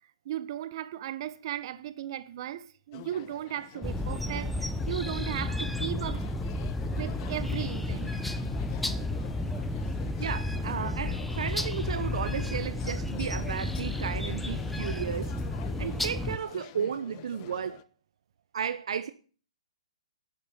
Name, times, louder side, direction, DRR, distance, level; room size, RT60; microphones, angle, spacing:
voice 1, 0.2-6.3 6.9-8.2, right 12 dB, 45° right, 1.3 m, -36 dB
sound 1, 2.9-17.8, left 17 dB, 35° left, 1.3 m, -48 dB
sound 2, 3.8-16.4, left 2 dB, ahead, 1.1 m, -32 dB
voice 2, 10.2-15.3 15.8-17.8 18.5-19.1, right 7 dB, 65° right, 0.9 m, -34 dB
12.5 x 10.0 x 8.8 m
hypercardioid pair, 135°, 3 cm